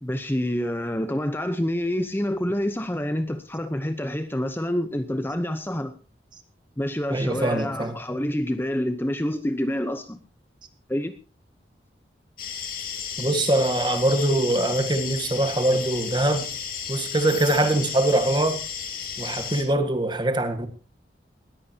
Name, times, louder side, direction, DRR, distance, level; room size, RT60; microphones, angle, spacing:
voice 1, 0.0-5.9 6.8-10.2 10.9-11.1 13.5-14.0, left 1 dB, 10° left, 0.8 m, -27 dB
voice 2, 7.1-7.9 13.2-16.5 16.9-18.6 19.2-20.7, right 1 dB, 25° right, 1.7 m, -23 dB
sound 1, 12.4-19.6, left 7 dB, 50° left, 3.2 m, -33 dB
20.0 x 14.5 x 2.9 m
head